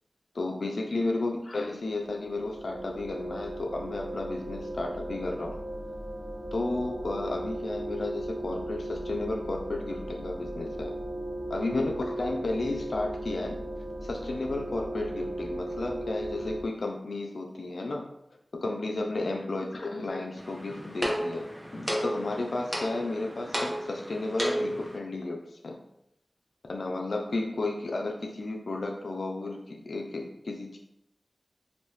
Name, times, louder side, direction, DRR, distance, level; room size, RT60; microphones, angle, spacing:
voice 1, 0.3-5.6 6.5-10.9 11.5-13.6 14.0-18.1 18.5-21.4 21.7-25.8 26.6-30.8, left 2 dB, 85° left, 1 dB, 0.3 m, -33 dB
sound 1, 1.8-16.6, right 1 dB, 80° right, 0.6 m, -37 dB
sound 2, 20.4-25.0, equal, 5° right, 1.0 m, -33 dB
3.0 x 2.6 x 3.1 m, 0.81 s
cardioid pair, 40°, 0 cm